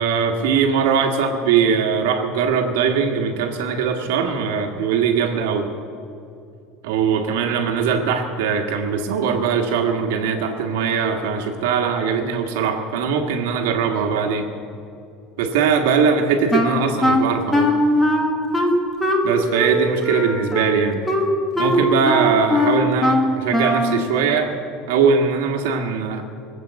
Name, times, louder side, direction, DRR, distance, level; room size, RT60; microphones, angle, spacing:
voice 1, 0.0-5.7 6.8-14.5 15.4-17.7 19.2-21.0 21.6-24.6 24.9-26.2, right 6 dB, 90° right, 2 dB, 1.5 m, -21 dB
Wind instrument woodwind instrument, 16.5-24.1, left 1 dB, 5° left, 1.2 m, -20 dB
20.0 x 7.7 x 8.0 m, 2.7 s
cardioid pair, 170°, 0 cm